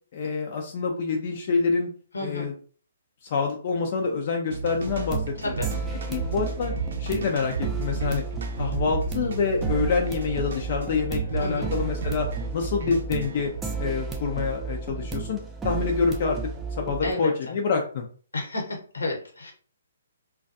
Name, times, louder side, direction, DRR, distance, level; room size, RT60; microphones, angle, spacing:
voice 1, 0.1-1.9 2.2-2.5 3.2-5.3 6.1-6.7 7.0-8.2 8.6-12.3 12.5-13.5 13.8-15.4 15.6-16.4 16.8-18.1, left 5 dB, 45° left, 1 dB, 0.4 m, -26 dB
voice 2, 2.1-2.5 5.4-5.7 11.4-11.7 17.0-17.5 18.3-19.5, left 2 dB, 80° left, 1 dB, 1.0 m, -32 dB
sound 1, 4.5-13.7, right 5 dB, 60° right, 0.6 m, -33 dB
sound 2, 4.9-17.1, right 4 dB, 10° right, 0.4 m, -33 dB
2.3 x 2.2 x 2.6 m, 0.41 s
figure-of-eight pair, 130°, 0 cm